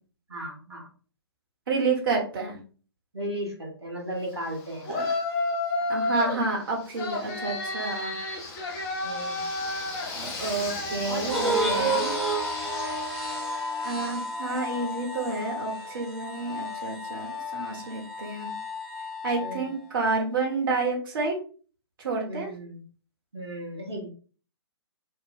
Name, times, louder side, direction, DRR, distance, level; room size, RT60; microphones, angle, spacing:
voice 1, 0.3-0.9 3.1-4.9 9.0-9.4 11.0-12.0 19.4-19.7 22.3-22.8 23.3-24.1, equal, 90° right, -2 dB, 1.1 m, -35 dB
voice 2, 1.7-2.6 4.9-5.1 5.9-8.2 10.1-12.1 13.8-18.5 19.2-21.4 22.0-22.5, right 3 dB, 55° right, -1 dB, 1.1 m, -29 dB
Yell, 4.8-6.4 6.9-13.7, left 2 dB, 35° left, 0.9 m, -32 dB
sound 1, 11.3-19.7, right 1 dB, ahead, 0.9 m, -31 dB
3.0 x 2.2 x 3.7 m, 0.40 s
figure-of-eight pair, 125°, 13 cm